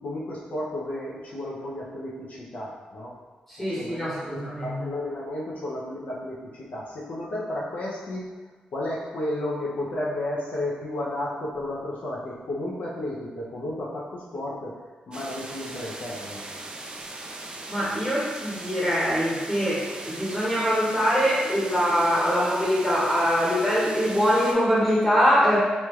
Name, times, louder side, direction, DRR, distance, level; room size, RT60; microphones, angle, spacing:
voice 1, 0.0-3.1 3.6-8.3 8.7-14.8 15.1-16.4, left 1 dB, 65° left, -5 dB, 0.5 m, -33 dB
voice 2, 3.5-4.8 17.7-25.6, equal, 5° left, -8 dB, 0.9 m, -23 dB
sound 1, 15.1-24.5, right 2 dB, 30° right, 0.3 m, -39 dB
3.1 x 2.3 x 3.0 m, 1.3 s
wide cardioid pair, 115°, 3 cm